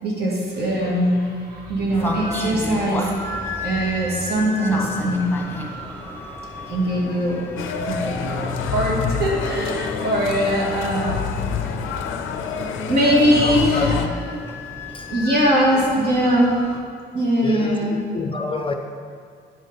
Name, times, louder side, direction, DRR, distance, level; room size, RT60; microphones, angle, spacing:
voice 1, 0.0-3.3 3.6-5.4 6.5-7.4 7.8-11.2 11.6-11.7 12.9-14.0 15.1-16.5 17.1-18.0, equal, 55° right, -3 dB, 2.0 m, -21 dB
sound 1, 1.9-16.8, left 2 dB, 10° left, 1.1 m, -33 dB
sound 2, 7.6-14.1, left 7 dB, 80° left, 0.5 m, -27 dB
voice 2, 13.4-13.9 14.9-15.1 17.4-18.7, left 3 dB, 25° left, 5 dB, 0.5 m, -28 dB
9.6 x 5.2 x 4.0 m, 2.2 s
cardioid pair, 90°, 20 cm